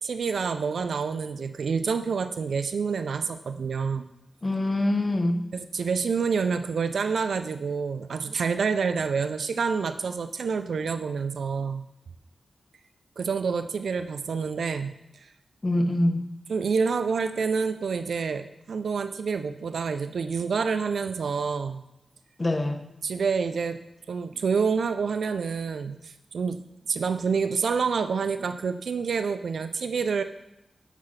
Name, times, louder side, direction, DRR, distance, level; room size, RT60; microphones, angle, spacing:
voice 1, 0.0-4.1 5.5-11.9 13.2-15.3 16.5-21.8 23.0-23.8 24.1-26.6 26.9-30.2, right 5 dB, 85° right, 10 dB, 0.4 m, -28 dB
voice 2, 4.4-5.5 15.6-16.3 22.4-22.8, left 1 dB, 35° left, 7 dB, 0.8 m, -24 dB
8.2 x 5.6 x 3.2 m, 0.88 s
cardioid pair, 55°, 0 cm